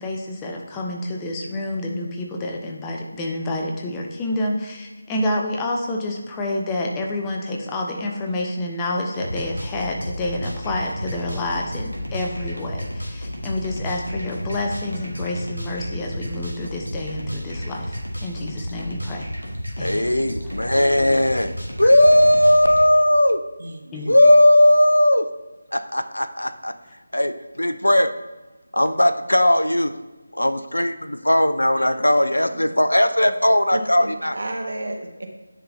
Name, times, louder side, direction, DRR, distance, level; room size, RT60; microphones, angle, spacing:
voice 1, 0.0-19.3 19.8-20.1 23.9-24.1, left 1 dB, 10° left, 0 dB, 0.5 m, -28 dB
sound 1, 9.1-22.9, equal, 90° right, 1.6 m, -32 dB
voice 2, 19.8-21.5 21.8-23.4 24.1-25.3 25.7-26.7 27.1-28.2 28.7-30.0 30.3-34.3, left 1 dB, 75° left, 10 dB, 0.4 m, -17 dB
voice 3, 23.6-24.2 31.7-32.0 33.2-33.3 33.7-35.3, right 1 dB, 55° right, 4 dB, 0.9 m, -32 dB
10.0 x 3.8 x 2.8 m, 1.1 s
figure-of-eight pair, 160°, 0 cm